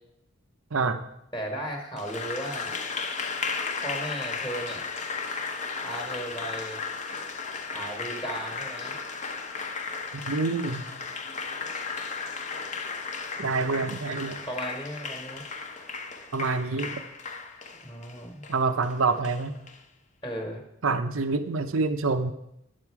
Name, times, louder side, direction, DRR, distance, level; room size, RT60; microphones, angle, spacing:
voice 1, 0.7-1.0 10.1-10.8 13.4-14.4 16.3-17.0 18.5-19.6 20.8-22.3, right 4 dB, 80° right, 9 dB, 0.7 m, -27 dB
voice 2, 1.3-2.8 3.8-4.8 5.8-6.8 7.7-8.9 14.5-15.4 17.8-18.4 20.2-20.6, right 1 dB, 15° left, 1 dB, 1.3 m, -35 dB
Applause, 2.0-19.8, left 4 dB, 35° left, 0.8 m, -35 dB
10.5 x 7.6 x 4.7 m, 0.81 s
head